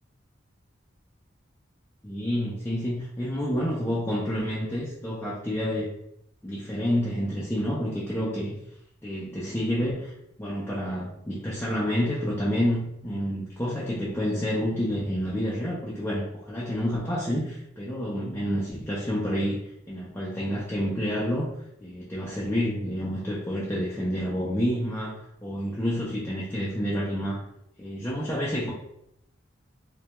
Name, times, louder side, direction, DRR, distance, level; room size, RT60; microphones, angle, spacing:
voice 1, 2.0-5.9 6.4-8.5 9.0-10.1 10.4-19.6 19.9-21.5 21.8-27.4 27.8-28.7, equal, 10° left, -7 dB, 0.3 m, -29 dB
2.1 x 2.1 x 2.8 m, 0.78 s
head